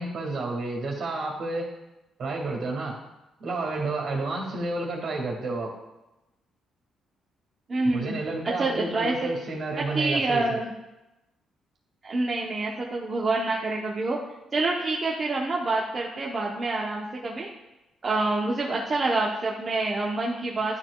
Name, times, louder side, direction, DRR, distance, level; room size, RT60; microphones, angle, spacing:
voice 1, 0.0-1.7 2.2-3.0 3.4-5.7 7.9-10.6, right 2 dB, 60° right, -1 dB, 2.0 m, -30 dB
voice 2, 7.7-8.2 8.4-9.3 9.8-10.7 12.0-14.2 14.5-17.5 18.0-20.8, right 2 dB, 35° right, -2 dB, 0.8 m, -27 dB
11.5 x 4.8 x 2.3 m, 0.97 s
cardioid pair, 90°, 0 cm